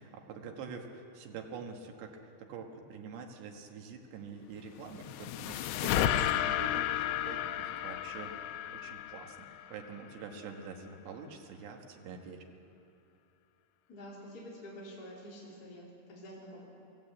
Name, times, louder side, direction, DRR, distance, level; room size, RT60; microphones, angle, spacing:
voice 1, 0.0-12.5, right 5 dB, 85° right, 2 dB, 3.7 m, -46 dB
sound 1, 4.7-10.1, left 11 dB, 85° left, 2.8 m, -33 dB
voice 2, 13.9-16.7, equal, 25° left, -6 dB, 3.9 m, -48 dB
24.5 x 15.0 x 8.6 m, 2.8 s
omnidirectional pair, 4.8 m